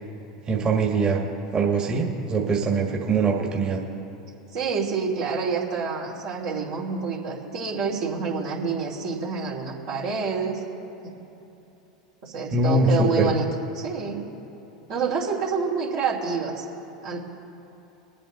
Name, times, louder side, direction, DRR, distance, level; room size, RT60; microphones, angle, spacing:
voice 1, 0.5-1.2 1.5-3.8 12.5-13.3, right 3 dB, 30° right, 0 dB, 1.8 m, -22 dB
voice 2, 4.5-10.6 12.2-13.5 13.7-14.2 14.9-16.6 17.0-17.2, right 5 dB, 65° right, -5 dB, 2.8 m, -27 dB
22.0 x 8.5 x 4.0 m, 3.0 s
hypercardioid pair, 90°, 3 cm